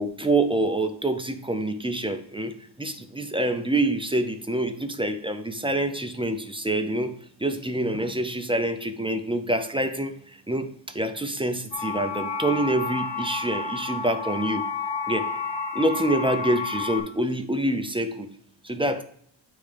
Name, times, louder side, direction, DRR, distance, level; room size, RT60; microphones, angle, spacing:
voice 1, 0.0-14.6 15.1-15.3 15.7-18.3 18.6-19.0, right 1 dB, 15° right, 8 dB, 0.3 m, -26 dB
sound 1, 11.7-17.0, left 4 dB, 70° left, 1.3 m, -30 dB
10.0 x 3.5 x 3.3 m, 0.65 s
wide cardioid pair, 170°, 46 cm